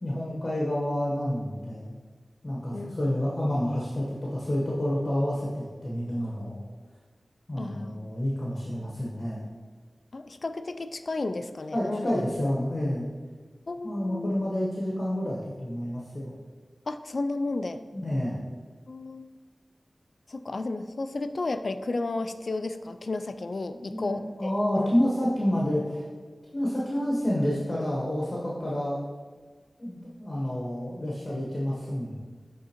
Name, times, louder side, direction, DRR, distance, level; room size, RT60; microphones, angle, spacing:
voice 1, 0.0-1.9 2.4-6.6 7.5-9.5 11.7-13.1 13.8-16.3 17.9-18.4 23.9-26.1 26.5-29.0 29.8-32.2, left 1 dB, 40° left, -5 dB, 1.0 m, -29 dB
voice 2, 7.5-8.1 10.1-12.1 12.4-12.5 13.7-14.3 16.9-17.8 18.9-19.3 20.3-24.5 24.8-24.9, left 2 dB, 60° left, 10 dB, 0.3 m, -33 dB
10.5 x 3.7 x 2.9 m, 1.5 s
wide cardioid pair, 85°, 0 cm